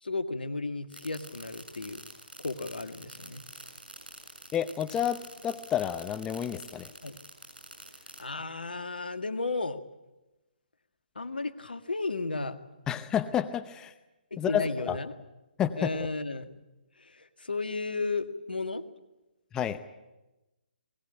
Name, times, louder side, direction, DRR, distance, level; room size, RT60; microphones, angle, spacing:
voice 1, 0.0-2.0 2.4-3.4 7.0-7.2 8.2-9.8 11.1-12.6 14.3-15.1 15.8-16.5 17.0-18.8, left 3 dB, 75° left, 9 dB, 1.7 m, -34 dB
sound 1, 0.9-8.2, right 2 dB, 85° right, 6.8 m, -47 dB
voice 2, 4.5-6.9 12.9-13.9 14.4-15.0 15.6-15.9 19.5-19.8, left 9 dB, 15° left, 10 dB, 0.8 m, -30 dB
20.5 x 17.0 x 9.8 m, 1.0 s
figure-of-eight pair, 140°, 5 cm